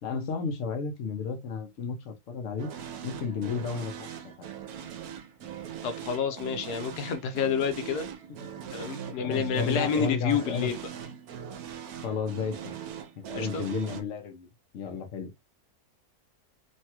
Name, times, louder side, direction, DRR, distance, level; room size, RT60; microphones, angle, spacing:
voice 1, 0.0-2.7 3.0-4.5 8.4-8.6 9.1-10.7 12.0-12.8 13.2-14.5 14.7-15.3, left 5 dB, 60° left, 1.0 m, -33 dB
sound 1, 2.6-14.0, right 8 dB, 75° right, 1.1 m, -40 dB
voice 2, 5.8-8.1 8.7-10.8 13.3-13.6, left 7 dB, 80° left, 1.2 m, -29 dB
3.1 x 2.3 x 2.8 m
omnidirectional pair, 1.7 m